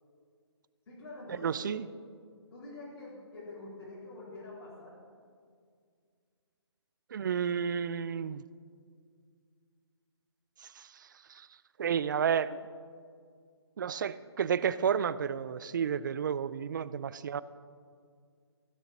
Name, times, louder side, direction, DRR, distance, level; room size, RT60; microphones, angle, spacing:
voice 1, 0.9-1.7 2.5-5.0, left 2 dB, 60° left, -6 dB, 3.7 m, -46 dB
voice 2, 1.4-1.9 7.1-8.4 10.6-11.5 11.8-12.6 13.8-17.4, right 7 dB, 45° right, 18 dB, 0.4 m, -31 dB
15.0 x 6.7 x 6.0 m, 2.1 s
hypercardioid pair, 150°, 15 cm